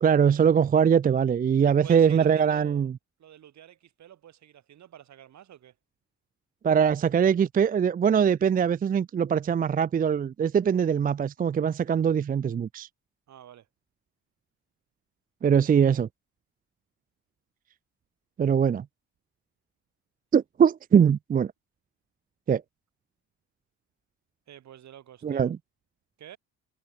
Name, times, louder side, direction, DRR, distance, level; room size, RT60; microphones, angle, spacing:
voice 1, 0.0-2.9 6.6-12.9 15.4-16.1 18.4-18.8 20.3-21.5 22.5-22.6 25.2-25.6, right 7 dB, 30° right, 0.4 m, -22 dB
voice 2, 1.6-2.9 3.2-5.8 13.3-13.7 24.5-25.5 26.2-26.4, right 11 dB, 65° right, 2.7 m, -48 dB
cardioid pair, 90°, 30 cm